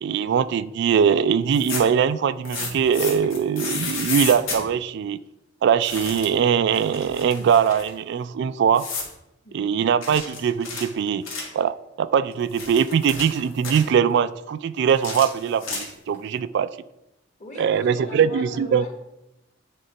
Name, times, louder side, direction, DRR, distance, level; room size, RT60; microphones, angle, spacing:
voice 1, 0.0-5.2 5.6-8.9 9.5-11.3 11.5-16.7 17.6-18.8, right 7 dB, 60° right, 14 dB, 0.3 m, -21 dB
sound 1, 1.4-2.0 2.4-4.6 5.8-6.4 6.7-7.9 8.7-9.1 10.0-11.6 12.3-13.9 14.9-16.1, left 4 dB, 85° left, 1.8 m, -32 dB
voice 2, 9.4-9.8 17.4-18.9, left 2 dB, 40° left, 2 dB, 1.5 m, -39 dB
9.3 x 3.8 x 4.4 m, 0.90 s
head